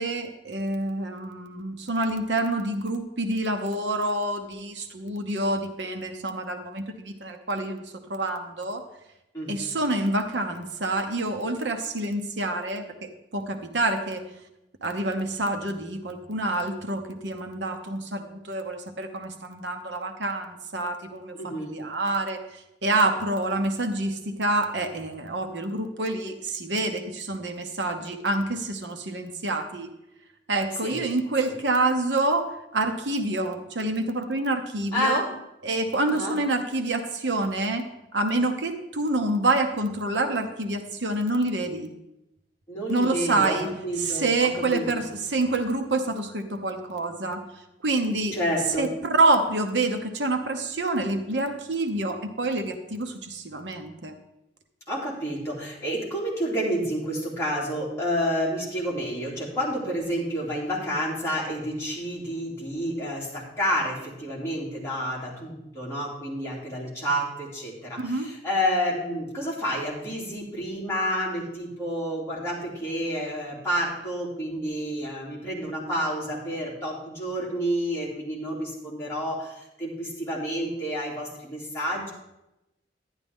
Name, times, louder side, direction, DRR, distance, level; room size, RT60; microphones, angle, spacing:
voice 1, 0.0-7.8 8.1-8.8 9.5-14.2 14.8-29.9 30.5-35.3 35.6-41.9 42.9-43.7 44.0-47.4 47.8-48.4 48.8-54.1 68.0-68.3, right 2 dB, 85° right, 6 dB, 1.0 m, -27 dB
voice 2, 21.3-21.7 30.8-31.0 34.9-35.3 36.1-36.4 42.7-45.0 48.3-48.9 54.9-82.1, equal, 15° left, -6 dB, 2.9 m, -29 dB
11.0 x 11.0 x 3.6 m, 0.89 s
head